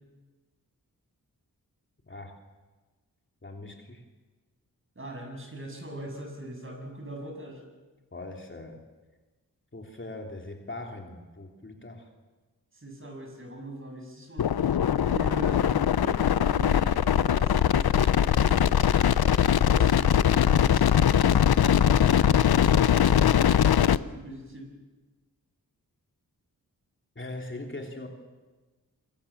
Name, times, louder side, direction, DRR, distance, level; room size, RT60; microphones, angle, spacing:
voice 1, 3.4-4.0 8.1-8.8 9.7-12.1 15.0-15.1 27.1-28.1, left 2 dB, 30° left, 2 dB, 3.1 m, -40 dB
voice 2, 5.0-7.6 12.7-14.5 15.0-18.7 19.5-24.7, right 1 dB, 35° right, 2 dB, 7.5 m, -41 dB
sound 1, 14.4-24.0, left 9 dB, 85° left, 0.7 m, -21 dB
26.0 x 23.5 x 7.3 m, 1.2 s
wide cardioid pair, 85°, 36 cm